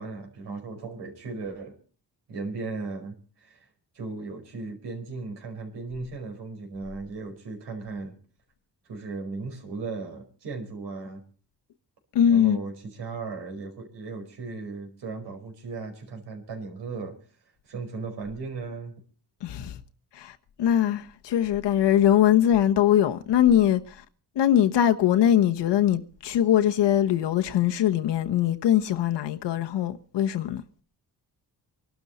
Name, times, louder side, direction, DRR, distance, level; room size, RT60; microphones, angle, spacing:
voice 1, 0.0-1.7 2.3-3.7 3.9-8.1 8.8-11.2 12.2-17.2 17.6-18.9, right 4 dB, 85° right, 5.1 m, -36 dB
voice 2, 12.1-12.6 19.4-19.8 20.1-24.0 24.3-30.6, left 10 dB, 85° left, 1.1 m, -22 dB
24.5 x 12.5 x 4.1 m
cardioid pair, 135°, 41 cm